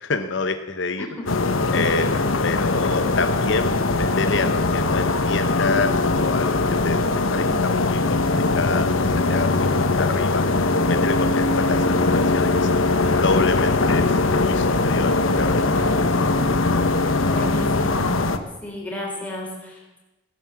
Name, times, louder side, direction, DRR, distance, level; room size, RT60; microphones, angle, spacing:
voice 1, 0.0-1.1 1.7-7.0 7.3-11.8 12.1-12.7 13.2-16.1, left 4 dB, 65° left, 8 dB, 0.8 m, -28 dB
sound 1, 1.3-18.4, left 3 dB, 85° left, 1.1 m, -21 dB
voice 2, 17.2-18.2 18.6-20.0, left 1 dB, 5° left, -2 dB, 3.9 m, -33 dB
16.5 x 10.5 x 7.5 m, 1.1 s
head